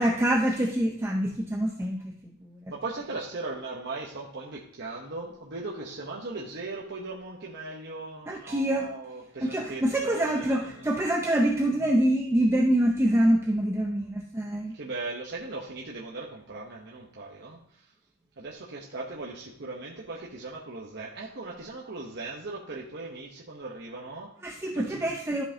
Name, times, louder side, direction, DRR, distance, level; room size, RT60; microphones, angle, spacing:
voice 1, 0.0-2.6 8.3-8.9 9.4-14.7 24.4-25.4, right 1 dB, 10° right, 1 dB, 0.5 m, -25 dB
voice 2, 2.7-10.9 14.7-17.6 18.4-24.3 24.7-25.1, right 3 dB, 50° right, -3 dB, 1.0 m, -38 dB
12.5 x 5.6 x 2.8 m, 0.74 s
head